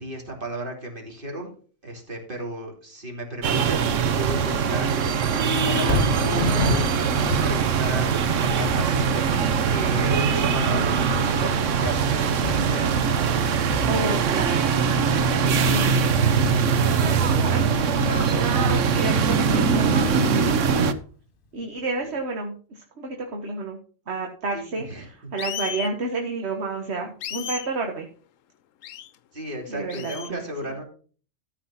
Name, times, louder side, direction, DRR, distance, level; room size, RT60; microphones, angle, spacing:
voice 1, 0.0-1.5 1.8-6.9 7.4-8.2 8.5-12.9 22.0-22.1 24.5-25.3 29.3-30.8, right 1 dB, 40° right, 1 dB, 3.0 m, -34 dB
sound 1, 3.4-20.9, right 6 dB, 70° right, 1.2 m, -22 dB
Thunder, 5.8-20.0 20.4-20.5, left 2 dB, 45° left, 1.3 m, -33 dB
voice 2, 13.9-15.1 15.4-16.0 16.9-20.9 21.5-23.8 24.1-28.1 29.7-30.4, right 3 dB, 55° right, 3 dB, 1.6 m, -31 dB
sound 2, 25.4-25.9 27.2-27.7 28.8-29.1 29.9-30.3, left 10 dB, 80° left, 1.0 m, -33 dB
13.5 x 5.0 x 5.7 m, 0.41 s
omnidirectional pair, 1.3 m